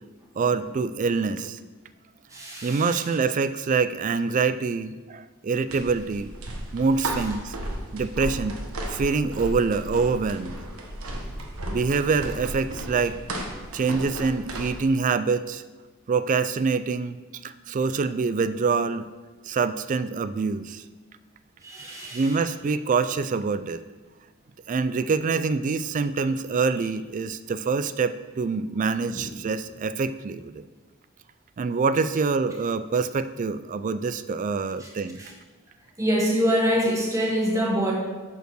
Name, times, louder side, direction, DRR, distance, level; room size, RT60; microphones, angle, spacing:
voice 1, 0.4-1.6 2.6-6.3 6.7-7.6 7.9-8.6 8.9-10.5 11.7-13.4 13.7-15.6 16.1-17.2 17.4-19.1 19.4-20.8 22.1-23.8 24.7-30.7 31.6-35.2, right 4 dB, 35° right, 13 dB, 0.3 m, -25 dB
voice 2, 2.3-3.1 21.6-22.4 29.1-29.3 34.8-34.9 35.1-35.3 36.0-37.9, equal, 15° right, -2 dB, 1.5 m, -25 dB
sound 1, 5.7-14.8, right 1 dB, 90° right, 1.2 m, -34 dB
6.6 x 5.4 x 6.2 m, 1.3 s
head